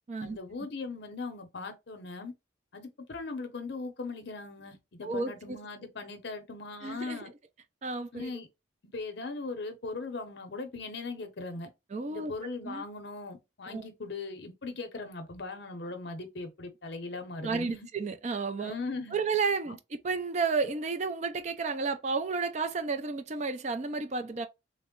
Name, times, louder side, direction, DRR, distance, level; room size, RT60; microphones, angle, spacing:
voice 1, 0.2-2.3 2.7-7.3 8.1-8.5 8.9-11.7 12.1-17.9 18.6-19.2 19.7-19.8, left 3 dB, 55° left, 0.6 m, -39 dB
voice 2, 5.0-5.6 6.8-7.2 7.8-8.3 11.9-12.3 12.6-12.8 13.7-13.9 17.4-18.7 19.1-24.5, right 4 dB, 35° right, 0.3 m, -32 dB
3.5 x 2.0 x 3.6 m
head